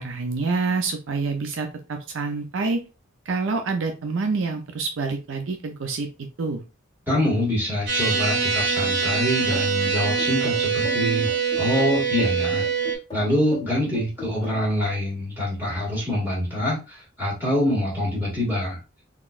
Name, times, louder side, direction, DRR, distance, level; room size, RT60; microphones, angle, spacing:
voice 1, 0.0-2.8 3.3-6.1 6.4-6.6, right 4 dB, 70° right, 5 dB, 0.5 m, -27 dB
voice 2, 7.1-12.6 13.1-18.8, left 1 dB, 10° right, -6 dB, 2.0 m, -25 dB
sound 1, 7.9-13.0, right 5 dB, 55° right, 1.0 m, -24 dB
sound 2, 9.5-14.8, left 2 dB, 20° left, 1.5 m, -37 dB
3.9 x 3.0 x 2.4 m, 0.29 s
head